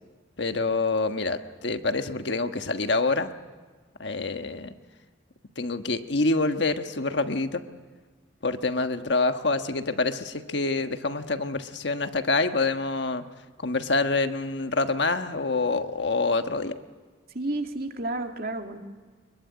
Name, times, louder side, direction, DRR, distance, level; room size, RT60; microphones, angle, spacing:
voice 1, 0.4-3.3 4.0-4.7 5.6-7.6 8.4-13.2 13.6-16.7, left 3 dB, 65° left, 7 dB, 1.4 m, -26 dB
voice 2, 17.3-18.8, right 2 dB, 50° right, 4 dB, 2.4 m, -31 dB
25.0 x 22.5 x 9.7 m, 1.4 s
head